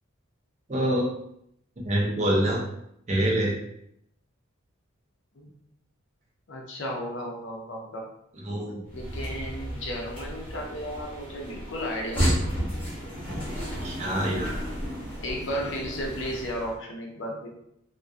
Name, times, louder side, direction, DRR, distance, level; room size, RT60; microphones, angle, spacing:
voice 1, 0.7-1.1 1.8-2.6 3.1-3.5 8.5-8.8 13.8-14.6, right 1 dB, 35° right, -3 dB, 0.5 m, -25 dB
voice 2, 6.5-8.0 8.9-12.6 15.2-17.5, equal, 60° left, 0 dB, 0.5 m, -34 dB
sound 1, 8.9-16.7, equal, 5° left, 0.8 m, -32 dB
2.2 x 2.2 x 2.5 m, 0.74 s
head